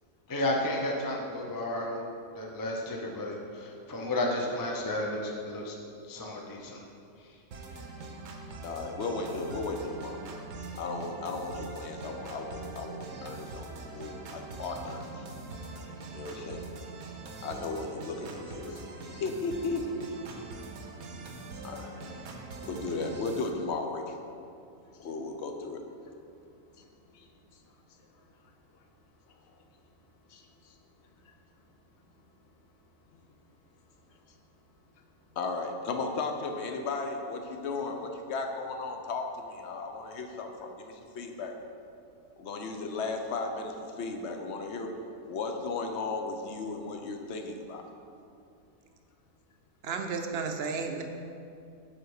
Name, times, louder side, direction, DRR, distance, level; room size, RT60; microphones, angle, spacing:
voice 1, 0.3-2.1 2.3-5.8 6.1-6.8 7.2-7.4, left 1 dB, 25° left, -1 dB, 0.5 m, -32 dB
sound 1, 7.5-23.5, right 3 dB, 90° right, 1.3 m, -43 dB
voice 2, 8.6-10.2 10.7-15.3 16.1-16.7 17.4-18.8 19.1-19.9 21.6-22.0 22.6-24.2 24.9-25.8 26.8-27.6 29.5-29.6 30.3-30.8 31.2-31.3 33.1-33.2 34.3-34.4 35.3-41.5 42.4-44.9 45.3-47.8, left 3 dB, 55° left, 4 dB, 0.9 m, -36 dB
voice 3, 49.8-51.0, right 5 dB, 55° right, 4 dB, 0.8 m, -33 dB
7.9 x 5.1 x 4.7 m, 2.5 s
omnidirectional pair, 1.5 m